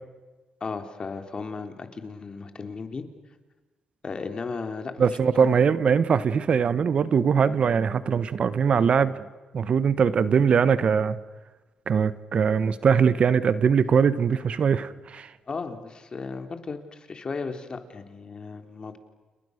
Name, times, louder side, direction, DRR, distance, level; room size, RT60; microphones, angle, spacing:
voice 1, 0.6-3.1 4.0-5.0 5.3-5.6 15.5-19.0, left 4 dB, 40° left, 6 dB, 3.7 m, -35 dB
voice 2, 5.0-9.1 9.5-11.2 11.9-15.3, right 6 dB, 55° right, 14 dB, 1.4 m, -21 dB
30.0 x 29.5 x 6.7 m, 1.2 s
cardioid pair, 75°, 2 cm